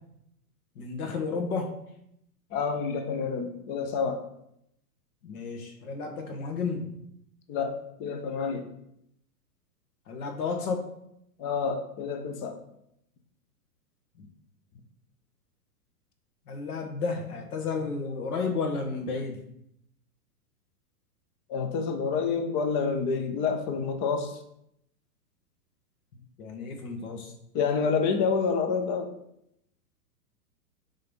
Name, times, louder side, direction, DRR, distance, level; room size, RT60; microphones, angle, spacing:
voice 1, 0.7-1.7 5.2-6.9 10.1-10.9 14.2-14.3 16.5-19.4 26.1-27.3, left 4 dB, 65° left, 4 dB, 1.6 m, -32 dB
voice 2, 2.5-4.2 7.5-8.7 11.4-12.6 21.5-24.4 27.5-29.1, left 5 dB, 20° left, 6 dB, 0.4 m, -28 dB
5.4 x 3.9 x 5.3 m, 0.77 s
hypercardioid pair, 130°, 47 cm